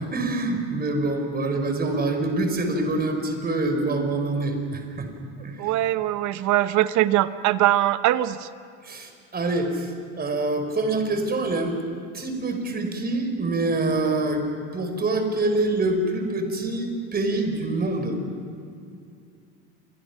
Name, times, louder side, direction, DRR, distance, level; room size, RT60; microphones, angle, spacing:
voice 1, 0.0-5.1 5.4-5.7 8.8-11.8 12.1-14.4 14.7-18.2, right 2 dB, 25° right, 5 dB, 4.7 m, -25 dB
voice 2, 5.6-8.5, right 14 dB, 55° right, 13 dB, 1.1 m, -22 dB
29.0 x 23.0 x 6.0 m, 2.4 s
supercardioid pair, 105°, 35 cm